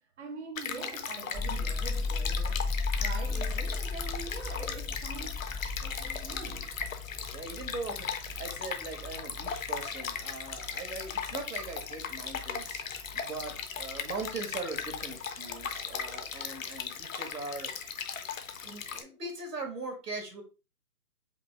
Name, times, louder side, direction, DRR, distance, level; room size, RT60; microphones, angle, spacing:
voice 1, 0.2-5.4 5.8-6.7, right 4 dB, 45° right, 0.6 m, -44 dB
Stream, 0.6-19.0, left 6 dB, 60° left, 0.7 m, -38 dB
sound 1, 1.3-15.1 15.5-16.4, left 3 dB, ahead, 0.4 m, -37 dB
voice 2, 7.3-17.7 18.6-20.4, right 3 dB, 90° right, 1.9 m, -40 dB
5.1 x 2.7 x 3.2 m
hypercardioid pair, 155°, 47 cm